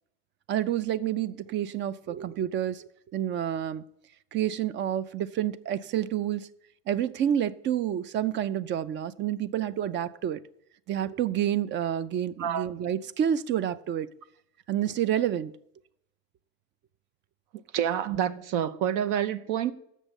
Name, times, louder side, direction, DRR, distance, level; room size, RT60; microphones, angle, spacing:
voice 1, 0.5-3.8 4.3-6.5 6.9-10.4 10.9-14.1 14.7-15.5 18.1-18.2, right 10 dB, 35° right, 0.5 m, -29 dB
voice 2, 17.7-19.7, right 9 dB, 65° right, 0.8 m, -28 dB
7.8 x 6.3 x 8.1 m
supercardioid pair, 130°, 34 cm